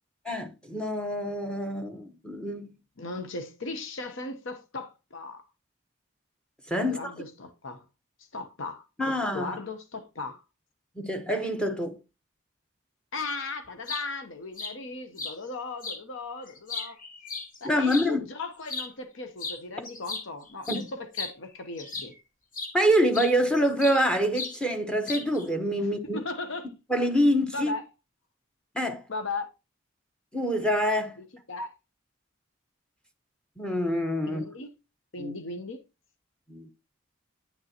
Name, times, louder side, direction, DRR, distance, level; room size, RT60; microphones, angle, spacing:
voice 1, 0.2-2.7 6.7-7.0 9.0-9.6 11.0-12.0 17.6-18.3 20.7-20.9 22.7-26.2 26.9-27.7 28.7-29.0 30.3-31.2 33.6-34.4 35.2-35.3 36.5-36.7, equal, 5° left, 1.0 m, -26 dB
voice 2, 3.0-5.4 6.8-7.8 8.3-10.4 13.1-17.0 17.6-22.1 25.8-26.7 27.5-27.8 29.1-29.5 31.2-31.7 34.3-34.7 35.1-35.8, left 3 dB, 75° left, 0.9 m, -37 dB
sound 1, 13.6-14.0 14.6-14.7 15.2-15.4 15.8-16.0 16.5-18.1 18.6-18.9 19.4-19.6 19.8-22.2 22.5-22.7 23.1-24.0 24.3-24.6 25.0-25.5, left 4 dB, 40° left, 1.3 m, -36 dB
9.4 x 6.4 x 2.9 m
head